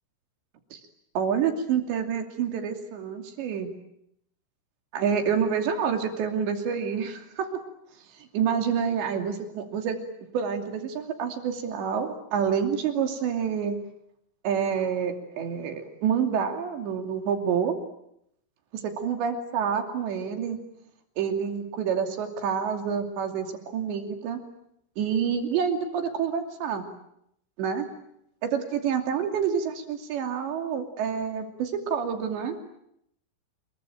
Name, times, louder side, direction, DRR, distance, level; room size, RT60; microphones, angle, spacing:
voice 1, 1.2-3.7 4.9-7.5 8.2-10.0 10.3-13.8 14.4-17.7 19.0-20.6 21.2-24.4 25.0-26.9 27.6-27.9 28.4-32.6, right 7 dB, 60° right, 5 dB, 4.7 m, -28 dB
28.0 x 22.5 x 9.0 m, 0.76 s
omnidirectional pair, 5.9 m